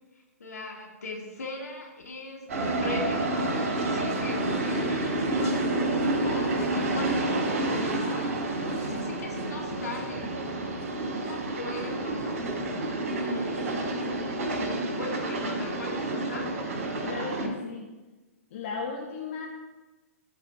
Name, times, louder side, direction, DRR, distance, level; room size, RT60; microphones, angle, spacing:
voice 1, 0.1-2.5 2.8-5.6 6.2-8.4 8.8-10.4 11.0-12.4 13.0-13.9 14.5-16.5, left 2 dB, 80° left, 0 dB, 2.6 m, -39 dB
Freight Train Passing By, 2.5-17.5, right 2 dB, 55° right, 3.7 m, -29 dB
voice 2, 17.0-17.9 18.5-19.5, left 5 dB, 50° left, 0 dB, 1.4 m, -35 dB
15.0 x 5.0 x 4.8 m, 1.2 s
hypercardioid pair, 130°, 8 cm